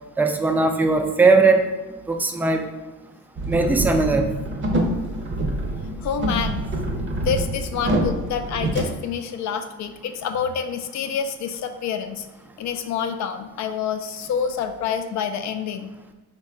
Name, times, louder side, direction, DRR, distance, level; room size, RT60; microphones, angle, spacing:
voice 1, 0.2-1.6 2.1-2.6 3.5-4.3, right 3 dB, 5° right, 4 dB, 0.3 m, -19 dB
sound 1, 3.4-8.8, right 1 dB, 40° right, 0.7 m, -26 dB
voice 2, 6.0-6.6 7.2-12.3 12.6-15.9, left 7 dB, 65° left, 7 dB, 0.4 m, -27 dB
3.9 x 2.3 x 3.7 m, 1.1 s
cardioid pair, 90°, 30 cm